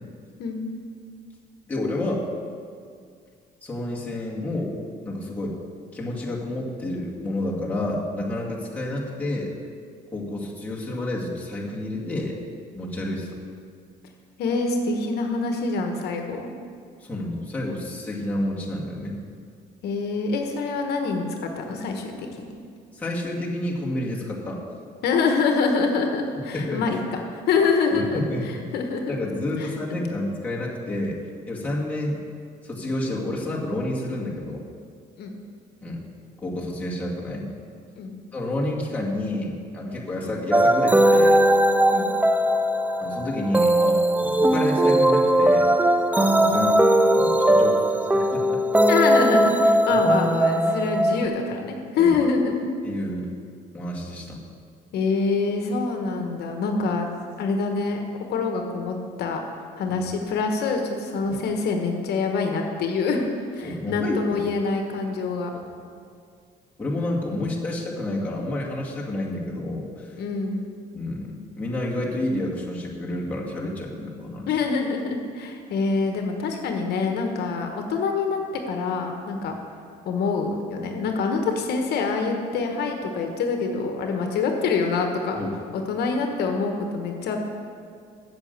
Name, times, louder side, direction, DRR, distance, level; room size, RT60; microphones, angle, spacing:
voice 1, 1.7-2.2 3.6-4.7 5.0-5.6 5.9-9.5 10.1-12.4 12.8-13.4 17.0-19.2 22.9-24.6 26.5-27.0 27.9-28.7 29.1-31.2 31.5-32.2 32.6-34.7 35.8-36.0 36.4-37.5 38.3-41.4 43.0-45.7 46.2-46.8 47.1-47.8 48.1-48.6 49.9-50.0 52.0-52.1 52.8-53.3 53.7-54.4 59.9-60.0 61.2-61.3 63.6-64.4 65.5-65.6 66.8-70.2 70.9-74.5 79.3-79.4 85.4-85.5, left 1 dB, 10° left, -5 dB, 2.2 m, -29 dB
voice 2, 14.4-16.5 19.8-22.6 25.0-29.2 29.6-29.7 35.2-35.4 37.9-38.2 41.9-42.1 48.9-52.5 54.9-57.1 57.4-59.4 59.8-63.2 63.5-65.5 70.2-70.6 74.5-79.5 80.0-85.4 85.7-87.4, left 4 dB, 70° left, 3 dB, 1.2 m, -25 dB
sound 1, 40.5-51.3, right 1 dB, 10° right, 0.4 m, -19 dB
8.2 x 6.9 x 8.1 m, 2.2 s
cardioid pair, 110°, 17 cm